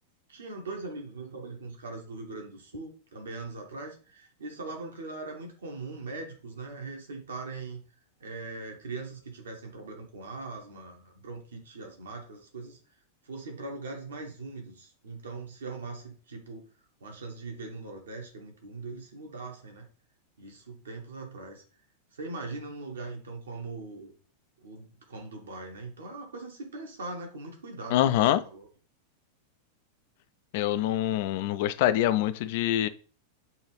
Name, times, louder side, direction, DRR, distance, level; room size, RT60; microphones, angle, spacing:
voice 1, 0.3-7.8 8.2-12.8 13.2-16.7 17.0-19.9 20.4-21.6 22.1-24.1 24.6-28.2 28.5-28.7, right 3 dB, 65° right, 1.2 m, -41 dB
voice 2, 27.9-28.4 30.5-32.9, left 12 dB, 50° left, 0.3 m, -25 dB
5.4 x 2.7 x 3.1 m
figure-of-eight pair, 90°, 0 cm